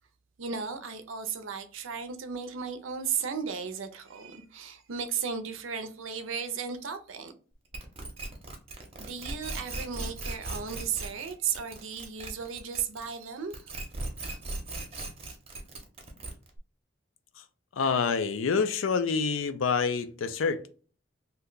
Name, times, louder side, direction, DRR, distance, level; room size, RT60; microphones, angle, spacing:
voice 1, 0.4-7.3 9.0-13.7, right 6 dB, 85° right, 0.5 m, -35 dB
sound 1, 7.7-13.2 13.5-16.6, right 2 dB, 30° right, 0.7 m, -38 dB
voice 2, 17.7-20.7, left 5 dB, 90° left, 0.4 m, -27 dB
2.7 x 2.2 x 3.7 m
head